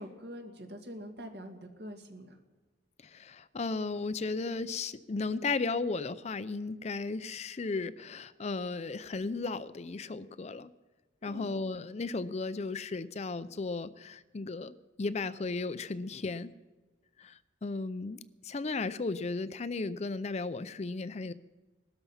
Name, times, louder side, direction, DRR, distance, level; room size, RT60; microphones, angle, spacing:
voice 1, 0.0-2.4 11.3-11.5, equal, 60° right, 4 dB, 2.1 m, -44 dB
voice 2, 3.0-10.7 11.2-16.5 17.2-21.3, left 3 dB, 35° left, 14 dB, 0.5 m, -35 dB
19.5 x 13.0 x 5.6 m, 1.3 s
head